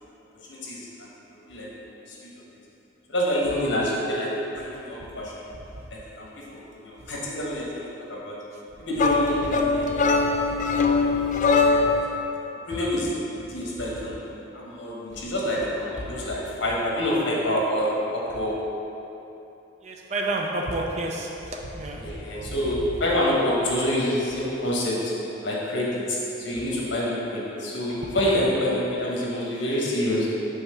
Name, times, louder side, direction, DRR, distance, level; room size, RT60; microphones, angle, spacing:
voice 1, 0.3-1.1 1.5-2.3 3.1-5.3 5.9-8.4 8.8-12.0 12.7-13.2 13.5-14.2 14.5-18.6 21.9-30.3, left 1 dB, 65° left, -5 dB, 1.2 m, -27 dB
sound 1, 9.0-12.1, left 3 dB, 40° left, 0.3 m, -21 dB
voice 2, 19.8-22.0 22.5-22.6, right 2 dB, 35° right, 0 dB, 0.5 m, -29 dB
5.6 x 3.5 x 5.6 m, 3.0 s
head